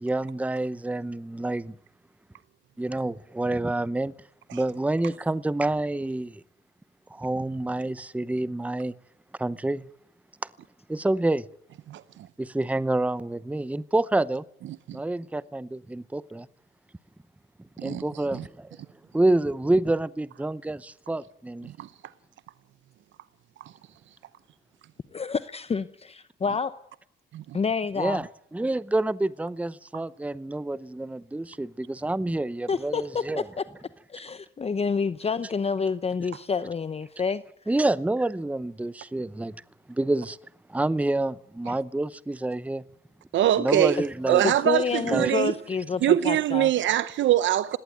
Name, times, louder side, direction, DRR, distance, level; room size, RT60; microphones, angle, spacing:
voice 1, 0.0-1.8 2.8-4.1 4.5-6.4 7.1-8.9 9.4-9.8 10.9-11.4 12.4-14.4 14.9-16.5 17.8-18.8 19.1-21.7 28.0-28.3 28.5-33.4 37.7-39.5 39.9-40.4 40.7-42.8 43.6-44.4 45.0-45.3, right 2 dB, 5° right, 0.8 m, -27 dB
voice 2, 25.1-26.7 27.5-28.2 32.7-33.6 34.1-37.4 44.4-46.7, left 5 dB, 30° left, 0.9 m, -28 dB
voice 3, 43.3-44.0 44.3-45.5 46.0-47.8, right 12 dB, 75° right, 0.8 m, -23 dB
19.5 x 17.5 x 9.3 m
cardioid pair, 90°, 20 cm